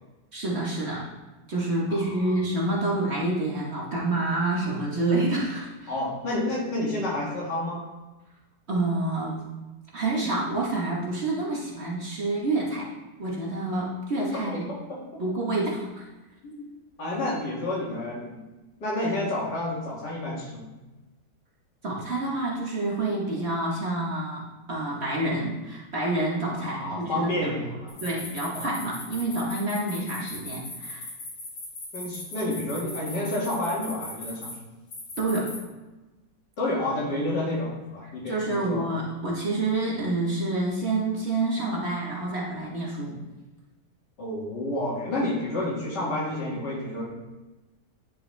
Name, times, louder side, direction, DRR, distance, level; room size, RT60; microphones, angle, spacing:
voice 1, 0.3-1.1 1.5-5.9 8.7-9.4 9.9-12.9 13.2-14.7 15.2-16.0 21.8-24.4 24.7-27.5 28.0-31.1 35.2-35.5 38.2-43.2, right 2 dB, 40° right, -4 dB, 1.4 m, -28 dB
voice 2, 1.9-2.3 5.9-7.8 14.5-15.0 16.4-16.6 17.0-18.4 18.8-20.6 26.6-27.9 31.9-34.5 36.6-38.8 44.2-47.1, left 1 dB, 70° left, -5 dB, 2.8 m, -30 dB
sound 1, 27.9-34.5 34.9-35.6, left 2 dB, 90° left, 3.5 m, -38 dB
10.0 x 5.4 x 3.3 m, 1.1 s
omnidirectional pair, 1.9 m